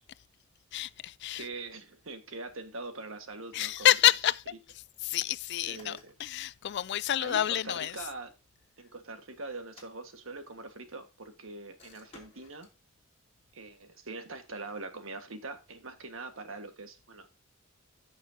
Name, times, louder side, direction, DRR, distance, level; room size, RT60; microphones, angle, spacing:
voice 1, 0.7-1.4 3.5-4.4 5.0-8.0, left 12 dB, 55° left, 0.4 m, -28 dB
voice 2, 1.3-3.9 5.6-6.1 7.2-8.3 8.8-12.7 13.5-17.4, right 3 dB, 75° right, 1.6 m, -43 dB
sound 1, 5.7-6.3 7.6-8.5 9.6-10.6 11.8-12.8, left 3 dB, 30° left, 2.9 m, -57 dB
14.5 x 6.6 x 2.8 m
head